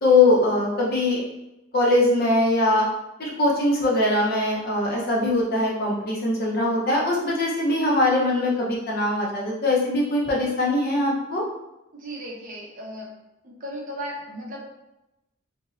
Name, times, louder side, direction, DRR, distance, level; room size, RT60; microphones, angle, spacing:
voice 1, 0.0-1.2 1.7-2.8 3.2-11.4, left 2 dB, 50° left, -4 dB, 0.7 m, -21 dB
voice 2, 11.9-13.1 13.4-14.6, equal, 40° right, -2 dB, 0.6 m, -36 dB
2.9 x 2.7 x 2.5 m, 0.94 s
head